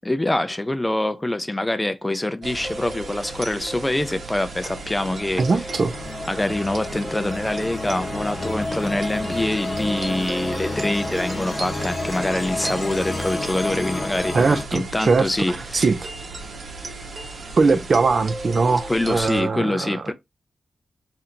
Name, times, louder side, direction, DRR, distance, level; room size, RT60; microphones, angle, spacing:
voice 1, 0.0-5.4 6.3-15.8 17.7-17.8 18.9-20.1, left 1 dB, 15° left, 0.4 m, -25 dB
sound 1, 2.4-19.4, right 2 dB, 75° right, 0.9 m, -35 dB
sound 2, 4.7-14.6, left 2 dB, 30° left, 0.8 m, -30 dB
voice 2, 5.4-6.0 14.3-16.1 17.6-20.1, right 4 dB, 55° right, 0.4 m, -21 dB
2.7 x 2.6 x 4.2 m
wide cardioid pair, 110°, 0 cm